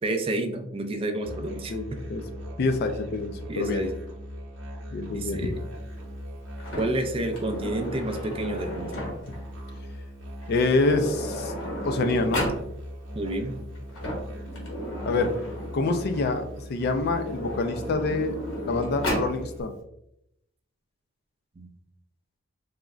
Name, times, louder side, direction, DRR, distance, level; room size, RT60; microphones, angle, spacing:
voice 1, 0.0-1.7 3.5-3.9 5.1-5.6 6.8-8.9 13.1-13.5 21.6-21.7, right 1 dB, 30° right, 6 dB, 0.3 m, -29 dB
Musical instrument, 1.2-19.6, equal, 80° right, 0.8 m, -40 dB
voice 2, 2.6-3.9 4.9-5.5 10.5-11.5 11.8-12.5 15.0-15.3 15.7-16.4 16.7-18.4 18.6-19.8, left 3 dB, 55° left, 7 dB, 0.3 m, -26 dB
Sliding door, 6.6-9.4 10.4-10.5 10.8-12.6 13.7-16.3 17.1-19.3, equal, 80° left, 0.9 m, -34 dB
3.7 x 2.1 x 2.3 m, 0.79 s
head